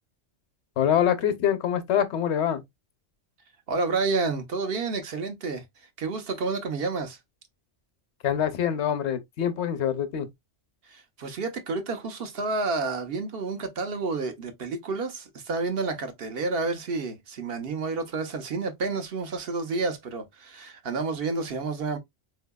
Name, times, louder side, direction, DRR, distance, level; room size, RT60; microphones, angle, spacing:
voice 1, 0.8-2.6 8.2-10.3, left 9 dB, 70° left, 0.9 m, -25 dB
voice 2, 3.7-5.6 6.0-7.2 10.9-22.0, right 3 dB, 55° right, 1.0 m, -30 dB
4.5 x 2.8 x 2.2 m
omnidirectional pair, 1.2 m